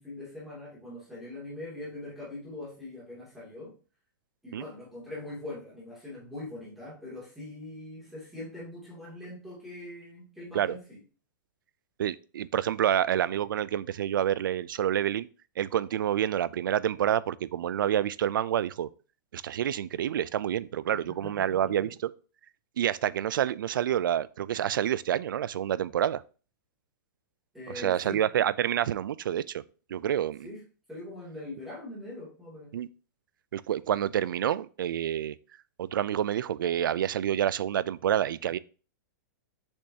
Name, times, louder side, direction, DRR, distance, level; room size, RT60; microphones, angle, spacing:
voice 1, 0.0-3.7 4.4-11.0 20.9-21.9 27.5-28.2 30.4-30.6 30.9-32.7, left 2 dB, ahead, 2.5 m, -42 dB
voice 2, 12.0-15.3 15.6-18.9 19.3-22.1 22.8-26.2 27.7-29.6 29.9-30.5 32.7-32.9 33.5-35.3 35.8-38.6, right 10 dB, 80° right, 0.4 m, -28 dB
6.9 x 5.4 x 2.8 m
hypercardioid pair, 175°, 11 cm